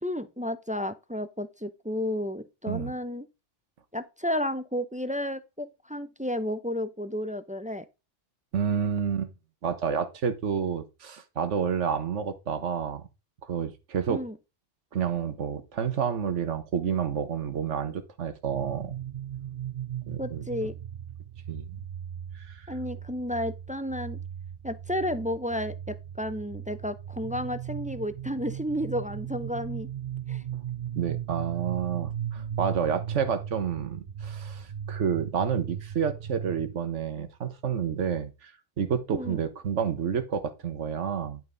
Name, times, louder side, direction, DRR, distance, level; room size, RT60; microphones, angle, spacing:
voice 1, 0.0-3.3 3.9-7.9 14.1-14.4 20.2-20.7 22.7-24.2 24.6-29.9 30.3-30.4 39.1-39.4, left 1 dB, 10° right, 0.4 m, -32 dB
voice 2, 8.5-9.3 9.6-13.0 13.4-14.2 14.9-18.9 20.1-20.4 21.5-21.9 22.5-22.7 30.9-38.5 38.8-41.4, right 7 dB, 90° right, 1.5 m, -29 dB
sound 1, 18.5-36.7, right 10 dB, 50° right, 0.7 m, -37 dB
11.0 x 5.5 x 3.9 m
omnidirectional pair, 1.2 m